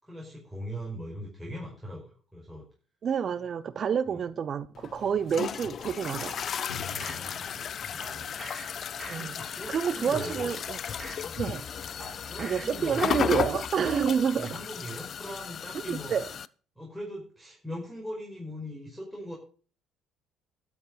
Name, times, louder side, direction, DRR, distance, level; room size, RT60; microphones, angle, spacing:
voice 1, 0.0-2.6 4.1-4.2 6.9-8.4 9.2-10.5 11.2-11.4 12.2-13.1 14.4-16.1 16.8-19.4, equal, ahead, 5.4 m, -40 dB
voice 2, 3.0-6.5 9.1-9.3 9.7-10.8 11.4-11.6 12.4-14.5 15.9-16.3, right 7 dB, 45° right, 0.5 m, -28 dB
sound 1, 4.7-16.5, left 8 dB, 50° left, 0.5 m, -35 dB
sound 2, 6.0-7.3 8.0-8.7 9.0-9.5 9.9-11.3 12.0-12.7 13.0-13.5 13.9-14.0, right 2 dB, 20° right, 2.6 m, -45 dB
Drum, 6.7-10.2, left 5 dB, 85° left, 2.0 m, -48 dB
12.5 x 7.1 x 6.9 m
hypercardioid pair, 55°, 0 cm